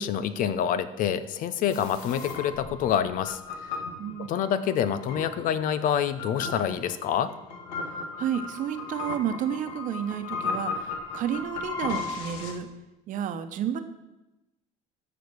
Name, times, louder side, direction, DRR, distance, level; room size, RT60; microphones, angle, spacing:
voice 1, 0.0-3.7 4.2-7.3, left 9 dB, 65° left, 13 dB, 0.8 m, -27 dB
sound 1, 1.7-12.5, left 4 dB, 85° left, 1.8 m, -36 dB
voice 2, 4.0-4.4 7.8-12.7 13.1-13.8, right 9 dB, 60° right, 9 dB, 1.1 m, -31 dB
14.0 x 5.1 x 6.3 m, 0.96 s
supercardioid pair, 95°, 15 cm